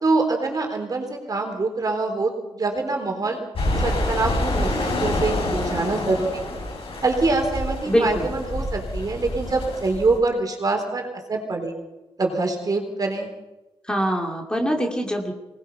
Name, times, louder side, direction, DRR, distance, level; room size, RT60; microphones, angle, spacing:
voice 1, 0.0-3.4 3.8-6.6 7.0-11.7 12.2-13.3, right 3 dB, 40° right, 3 dB, 3.9 m, -25 dB
sound 1, 3.5-10.2, left 1 dB, 65° left, 7.1 m, -27 dB
voice 2, 7.9-8.3 13.8-15.3, equal, 10° left, 1 dB, 2.4 m, -23 dB
25.0 x 20.0 x 5.6 m, 1.0 s
wide cardioid pair, 175°, 10 cm